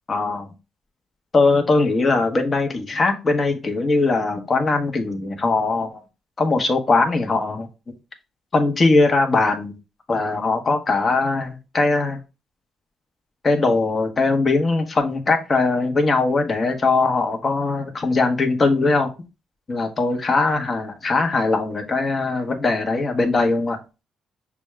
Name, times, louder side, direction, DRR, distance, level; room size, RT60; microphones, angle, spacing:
voice 1, 0.1-0.5 1.3-6.0 6.4-7.7 8.5-9.8 10.1-12.2 13.4-19.1 19.7-23.8, left 3 dB, 35° left, 1.0 m, -20 dB
6.1 x 2.3 x 3.1 m
cardioid pair, 90°, 0 cm